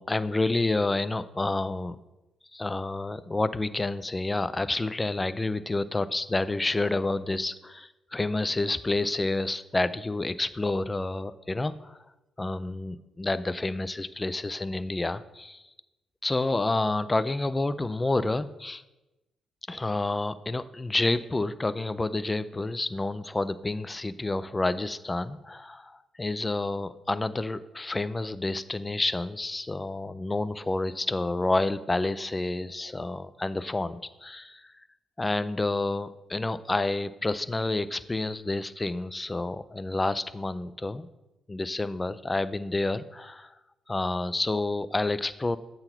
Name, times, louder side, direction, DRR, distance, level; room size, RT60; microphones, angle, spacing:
voice 1, 0.0-2.0 2.5-12.0 12.4-15.6 16.2-18.8 19.7-34.7 35.2-41.1 41.5-43.5 43.9-45.6, left 2 dB, 25° left, 15 dB, 0.4 m, -29 dB
7.7 x 3.9 x 4.4 m, 1.0 s
hypercardioid pair, 45°, 0 cm